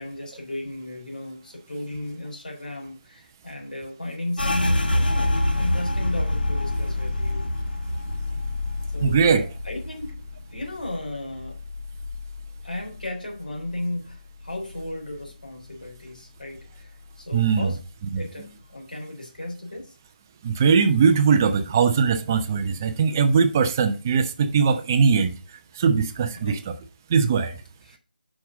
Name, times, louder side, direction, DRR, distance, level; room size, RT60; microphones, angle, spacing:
voice 1, 0.0-7.4 8.9-10.2 10.5-11.6 12.6-17.8 18.2-20.0 26.4-26.6 27.8-28.0, left 1 dB, 60° left, 3.5 m, -35 dB
sound 1, 4.4-13.8 14.1-15.3 15.6-16.1 16.6-17.1, left 1 dB, 80° left, 1.5 m, -28 dB
voice 2, 9.0-9.5 17.3-17.7 18.1-18.2 20.4-25.3 25.7-26.6 27.1-27.6, right 6 dB, 20° right, 0.7 m, -20 dB
8.5 x 5.3 x 3.8 m
figure-of-eight pair, 160°, 5 cm